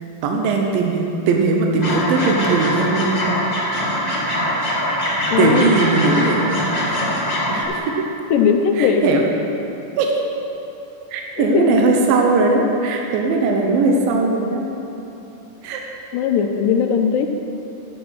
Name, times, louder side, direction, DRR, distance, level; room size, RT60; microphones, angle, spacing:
voice 1, 0.2-3.4 5.1-6.4 7.5-7.7 8.8-9.2 10.0-10.1 11.1-14.6 15.6-15.8, right 3 dB, 75° right, 1 dB, 2.5 m, -19 dB
sound 1, 1.8-7.7, equal, 20° left, 1.1 m, -23 dB
sound 2, 1.9-7.8, equal, 50° right, 4.1 m, -33 dB
voice 2, 5.3-5.7 8.3-9.1 11.4-11.8 16.1-17.3, left 7 dB, 80° left, 5 dB, 2.3 m, -18 dB
11.0 x 7.1 x 6.3 m, 3.0 s
omnidirectional pair, 4.1 m